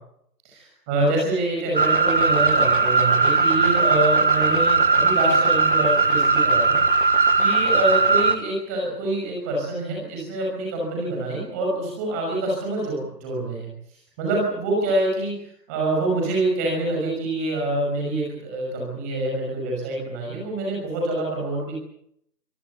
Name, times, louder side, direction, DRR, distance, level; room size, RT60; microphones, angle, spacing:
voice 1, 0.9-13.7 14.2-15.3 15.7-21.8, right 2 dB, 10° right, -2 dB, 5.8 m, -26 dB
sound 1, 1.7-8.4, right 4 dB, 30° right, 1.8 m, -19 dB
26.5 x 18.0 x 8.3 m, 0.73 s
figure-of-eight pair, 160°, 49 cm